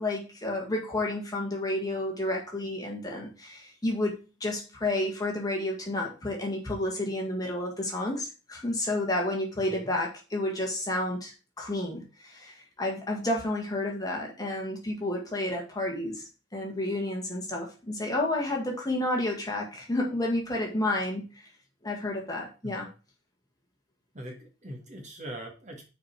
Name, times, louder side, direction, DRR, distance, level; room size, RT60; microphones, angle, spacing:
voice 1, 0.0-21.5 21.8-22.9, left 1 dB, 20° left, -1 dB, 1.7 m, -31 dB
voice 2, 24.1-25.8, right 1 dB, 35° right, 1 dB, 1.9 m, -42 dB
6.5 x 4.5 x 5.8 m, 0.31 s
head